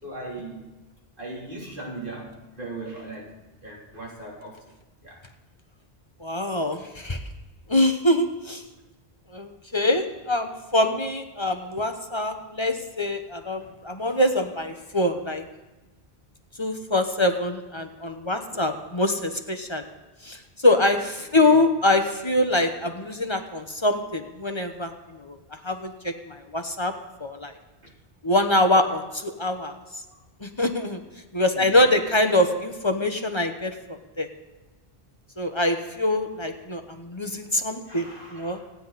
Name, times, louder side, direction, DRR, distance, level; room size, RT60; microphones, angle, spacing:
voice 1, 0.0-0.7 1.2-3.4 3.6-4.7 5.0-5.2 13.6-13.7 18.5-18.6 21.4-21.6 30.1-30.2 31.5-31.7 37.9-38.6, right 2 dB, 55° right, -4 dB, 3.7 m, -39 dB
voice 2, 6.2-7.2 7.7-8.6 9.3-15.4 16.6-19.8 20.2-25.4 25.6-26.9 27.2-27.5 28.2-29.8 30.4-31.0 31.3-34.3 35.4-38.6, left 1 dB, 30° left, 6 dB, 1.1 m, -24 dB
26.5 x 9.8 x 4.2 m, 1.1 s
omnidirectional pair, 1.1 m